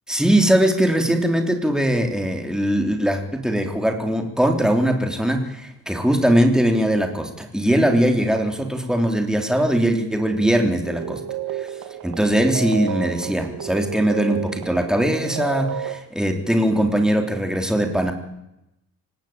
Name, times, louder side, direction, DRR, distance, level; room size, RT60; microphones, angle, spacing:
voice 1, 0.1-11.2 11.5-11.7 12.0-18.1, right 1 dB, ahead, 4 dB, 3.5 m, -20 dB
sound 1, 10.8-16.0, right 8 dB, 65° right, 2.2 m, -31 dB
26.0 x 18.5 x 8.9 m, 0.89 s
cardioid pair, 150°, 37 cm